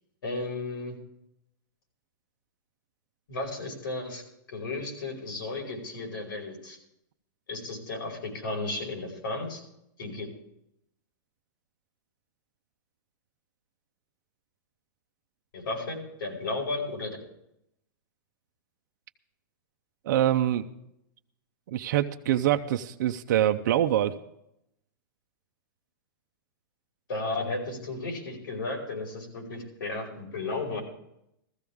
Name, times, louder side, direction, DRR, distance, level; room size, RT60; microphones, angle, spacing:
voice 1, 0.2-1.0 3.3-4.2 4.5-6.8 7.5-9.6 10.0-10.3 15.5-17.2 27.1-30.8, left 2 dB, 85° left, 1 dB, 5.2 m, -34 dB
voice 2, 20.1-20.7 21.7-24.1, right 12 dB, 60° right, 6 dB, 0.7 m, -25 dB
16.0 x 14.5 x 3.6 m, 0.79 s
supercardioid pair, 165°, 11 cm